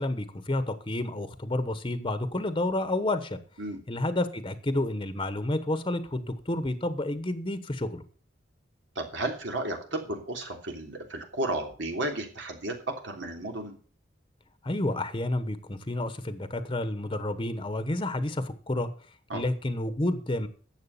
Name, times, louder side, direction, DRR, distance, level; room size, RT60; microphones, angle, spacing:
voice 1, 0.0-3.4 3.9-8.0 14.6-18.9 19.3-20.5, left 1 dB, 25° left, 11 dB, 1.0 m, -30 dB
voice 2, 8.9-13.7 19.3-19.4, right 2 dB, 75° right, 2 dB, 3.2 m, -33 dB
11.0 x 7.7 x 7.1 m, 0.43 s
head